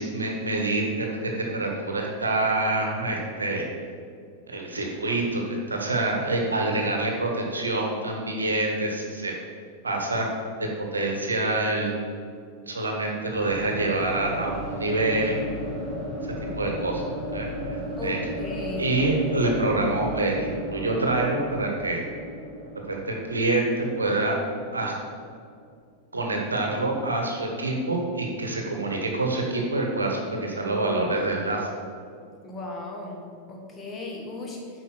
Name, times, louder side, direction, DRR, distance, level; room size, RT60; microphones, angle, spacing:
voice 1, 0.0-3.6 4.5-9.3 9.8-10.3 10.6-12.0 12.7-15.4 16.5-17.0 17.3-18.2 18.8-22.0 22.9-24.4 24.7-25.0 26.1-31.7, right 2 dB, 75° right, 1 dB, 1.3 m, -26 dB
sound 1, 13.3-25.1, equal, 20° right, 2.3 m, -35 dB
voice 2, 18.0-18.9 32.4-34.8, left 2 dB, 20° left, -2 dB, 1.8 m, -36 dB
8.3 x 5.0 x 6.1 m, 2.3 s
figure-of-eight pair, 90°, 0 cm